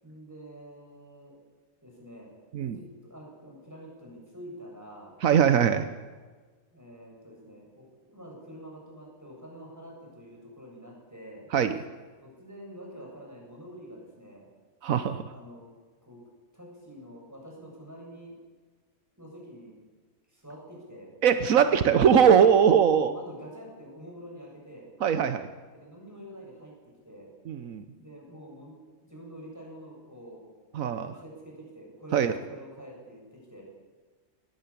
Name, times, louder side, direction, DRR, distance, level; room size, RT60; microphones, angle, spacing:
voice 1, 0.0-1.4 1.8-2.3 2.6-5.2 6.7-11.5 12.2-14.5 15.3-15.7 16.1-16.2 16.5-18.4 19.2-19.8 20.3-21.1 22.6-24.9 25.7-26.7 27.1-27.3 27.9-28.8 29.1-30.4 31.0-33.6, equal, 10° right, -2 dB, 7.2 m, -46 dB
voice 2, 5.2-5.9 11.5-11.7 14.8-15.2 21.2-23.1 25.0-25.5 27.5-27.8 30.7-31.2 32.1-32.3, right 8 dB, 85° right, 10 dB, 1.3 m, -21 dB
19.5 x 17.0 x 8.6 m, 1.4 s
omnidirectional pair, 1.4 m